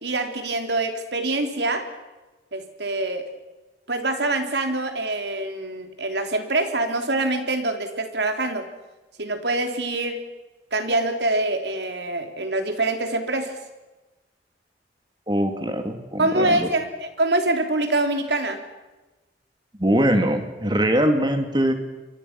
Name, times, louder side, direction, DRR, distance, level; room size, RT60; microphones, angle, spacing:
voice 1, 0.0-1.8 2.5-3.3 3.9-8.6 9.2-10.2 10.7-13.5 16.2-18.6, right 2 dB, 75° right, 6 dB, 3.4 m, -25 dB
voice 2, 15.3-16.7 19.8-21.7, right 1 dB, 25° right, 6 dB, 2.8 m, -22 dB
28.5 x 23.0 x 6.1 m, 1.1 s
head